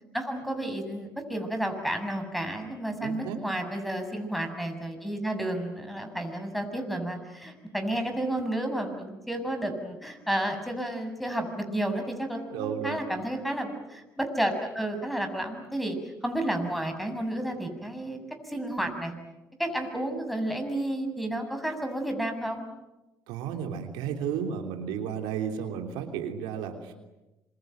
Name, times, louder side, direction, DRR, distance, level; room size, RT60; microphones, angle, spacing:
voice 1, 0.1-18.2 18.4-19.1 19.6-22.6, right 1 dB, ahead, 6 dB, 7.0 m, -31 dB
voice 2, 3.0-3.4 12.5-13.0 23.3-26.9, right 8 dB, 85° right, 5 dB, 3.2 m, -33 dB
26.5 x 23.5 x 9.2 m, 1.0 s
supercardioid pair, 70°, 8 cm